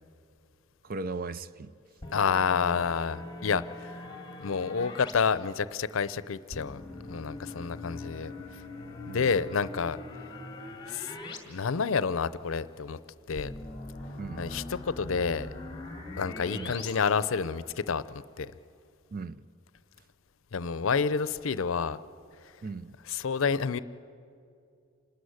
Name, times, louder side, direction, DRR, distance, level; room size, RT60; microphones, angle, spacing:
voice 1, 0.8-1.7 9.1-9.3 14.2-14.5 16.5-16.8 19.1-19.4 22.6-22.9, right 3 dB, 45° right, 0.5 m, -37 dB
sound 1, 2.0-5.1 6.5-11.4 11.7-11.8 13.4-16.9, left 2 dB, 20° left, 2.1 m, -42 dB
voice 2, 2.1-4.0 4.4-6.8 7.1-8.3 9.1-10.0 10.9-11.2 11.5-13.0 13.3-13.5 14.4-15.5 16.2-18.5 20.5-22.0 23.1-23.8, left 5 dB, 80° left, 0.6 m, -29 dB
27.0 x 13.0 x 9.6 m
head